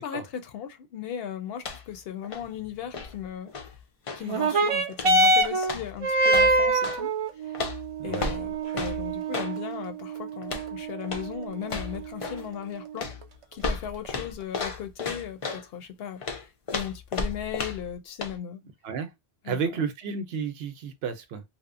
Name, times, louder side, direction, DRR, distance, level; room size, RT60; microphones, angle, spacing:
voice 1, 0.0-3.5 4.2-7.1 7.4-7.6 8.0-13.1 13.5-16.2 16.7-18.6 19.4-19.7, left 9 dB, 70° left, 0.8 m, -37 dB
sound 1, 1.6-2.0 2.2-4.3 4.9-5.3 5.6-7.0 7.5-9.6 10.4-10.7 11.0-11.3 11.6-12.5 13.0-15.7 16.2-17.9 18.2-18.4, left 4 dB, 50° left, 0.4 m, -34 dB
sound 2, 4.2-13.2 14.1-14.2, right 2 dB, 55° right, 0.3 m, -26 dB
voice 2, 8.0-8.3 18.8-19.1 19.4-21.4, right 6 dB, 75° right, 0.8 m, -31 dB
2.8 x 2.0 x 2.4 m
omnidirectional pair, 1.1 m